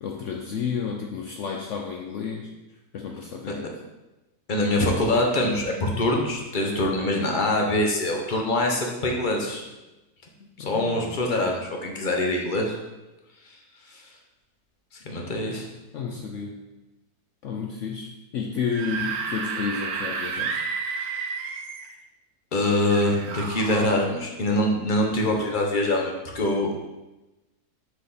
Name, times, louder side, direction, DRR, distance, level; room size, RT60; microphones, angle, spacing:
voice 1, 0.0-2.5 2.9-3.6 10.6-11.0 15.2-15.4 15.9-16.6 17.4-20.6, left 6 dB, 65° left, 1 dB, 0.8 m, -31 dB
voice 2, 4.5-9.6 10.7-12.7 13.9-14.0 15.0-15.7 22.5-26.9, left 1 dB, 35° left, 1 dB, 0.9 m, -24 dB
Screaming / Screech, 18.6-21.9 22.9-24.0, right 5 dB, 75° right, 1.1 m, -31 dB
5.9 x 5.0 x 4.0 m, 1.0 s
omnidirectional pair, 1.7 m